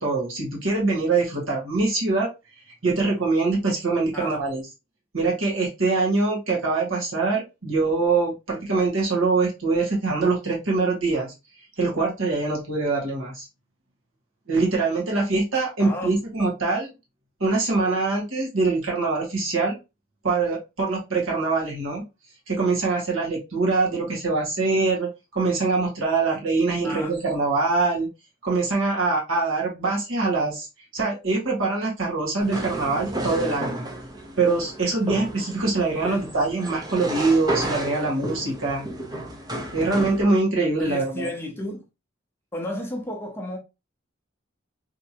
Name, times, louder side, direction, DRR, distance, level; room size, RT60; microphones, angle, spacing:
voice 1, 0.0-2.3 2.8-4.6 5.1-11.3 11.8-13.4 14.5-16.9 17.4-19.8 20.2-22.0 22.5-28.1 28.4-30.7 30.9-33.9 34.4-38.8 39.7-41.3, right 3 dB, 80° right, 1.6 m, -23 dB
voice 2, 15.8-16.1 26.8-27.2 36.0-36.3 40.8-41.8 42.5-43.6, left 1 dB, 10° left, 0.7 m, -33 dB
sound 1, 32.4-40.2, right 1 dB, 20° right, 0.6 m, -32 dB
3.4 x 3.0 x 2.8 m
head